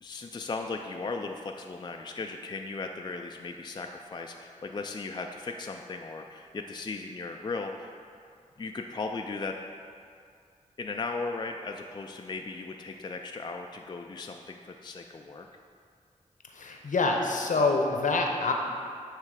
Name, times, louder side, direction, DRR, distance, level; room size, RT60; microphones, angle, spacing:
voice 1, 0.0-7.9 8.6-9.6 10.8-15.5, left 3 dB, 35° left, 3 dB, 0.4 m, -37 dB
voice 2, 16.5-18.5, left 3 dB, 70° left, 2 dB, 0.8 m, -26 dB
8.5 x 3.2 x 4.8 m, 2.3 s
cardioid pair, 50°, 14 cm